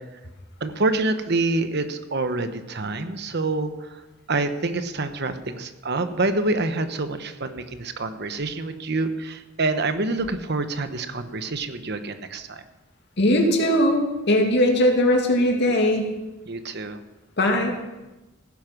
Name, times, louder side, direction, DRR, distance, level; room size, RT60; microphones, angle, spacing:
voice 1, 0.6-4.0 4.3-12.6 16.5-17.0, right 2 dB, 60° right, 9 dB, 1.1 m, -27 dB
voice 2, 13.2-16.1 17.4-17.7, left 1 dB, 60° left, 2 dB, 2.5 m, -20 dB
16.0 x 10.0 x 6.1 m, 1.1 s
head